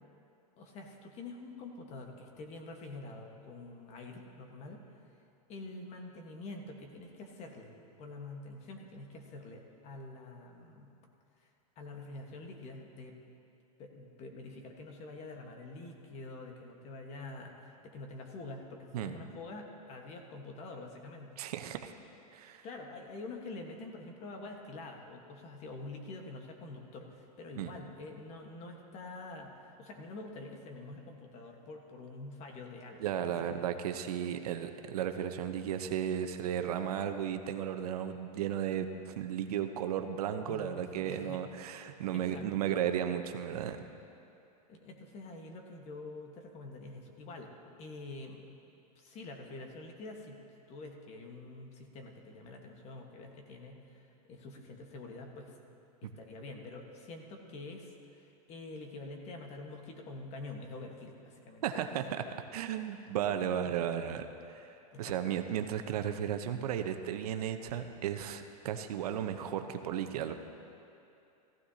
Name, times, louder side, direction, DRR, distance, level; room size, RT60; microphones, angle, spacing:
voice 1, 0.6-4.8 5.5-7.7 8.0-10.9 11.4-11.5 11.8-13.2 13.8-21.3 22.6-33.0 33.4-33.7 40.5-41.4 42.1-42.8 44.7-47.5 47.8-48.4 49.0-50.4 50.7-55.6 56.0-61.9 63.6-63.7 64.9-65.1, left 2 dB, 35° left, 3 dB, 1.4 m, -46 dB
voice 2, 21.4-21.9 22.3-22.6 27.6-27.7 33.0-43.8 61.6-62.3 62.5-70.3, right 9 dB, 75° right, 7 dB, 0.8 m, -34 dB
15.0 x 15.0 x 2.8 m, 2.7 s
supercardioid pair, 135°, 20 cm